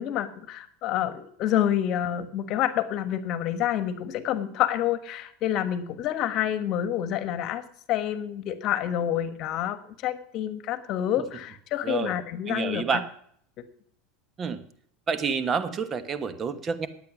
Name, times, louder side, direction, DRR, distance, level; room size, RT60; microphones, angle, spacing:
voice 1, 0.0-7.6 7.9-13.0, left 11 dB, 50° left, 12 dB, 1.2 m, -28 dB
voice 2, 11.8-12.1 12.5-13.1 14.4-14.6 15.1-16.9, right 6 dB, 30° right, 12 dB, 1.2 m, -28 dB
10.5 x 8.9 x 6.0 m, 0.63 s
supercardioid pair, 105°, 0 cm